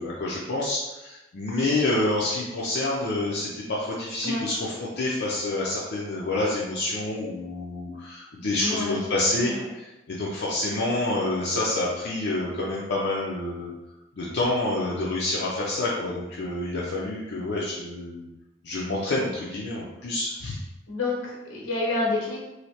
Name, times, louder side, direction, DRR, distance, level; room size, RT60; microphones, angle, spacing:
voice 1, 0.0-13.7 14.2-18.3 18.6-20.6, left 2 dB, 60° left, -5 dB, 0.5 m, -28 dB
voice 2, 8.6-9.7 20.9-22.4, left 2 dB, 85° left, -3 dB, 1.0 m, -29 dB
3.2 x 2.7 x 2.8 m, 0.99 s
head